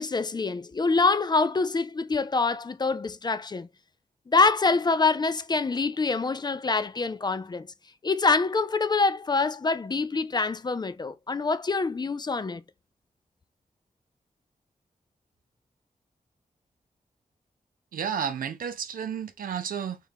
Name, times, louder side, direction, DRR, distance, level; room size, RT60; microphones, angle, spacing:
voice 1, 0.0-3.7 4.3-7.7 8.0-12.6, left 4 dB, 30° left, 0.4 m, -25 dB
voice 2, 17.9-20.0, right 7 dB, 85° right, 0.5 m, -31 dB
3.6 x 2.2 x 3.4 m
cardioid pair, 55°, 14 cm